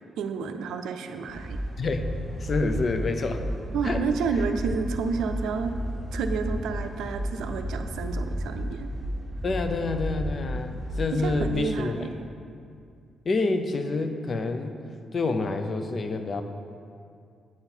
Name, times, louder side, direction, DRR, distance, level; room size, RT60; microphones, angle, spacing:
voice 1, 0.0-1.6 3.7-5.7 6.1-8.9 11.1-12.1, right 5 dB, 80° right, 7 dB, 0.4 m, -30 dB
sound 1, 1.3-11.6, equal, 15° right, 1.2 m, -33 dB
voice 2, 1.8-2.1 2.4-3.4 3.8-4.0 9.4-12.1 13.3-14.8 15.1-16.4, left 3 dB, 50° left, 7 dB, 0.6 m, -28 dB
8.7 x 3.8 x 4.4 m, 2.3 s
supercardioid pair, 60°, 0 cm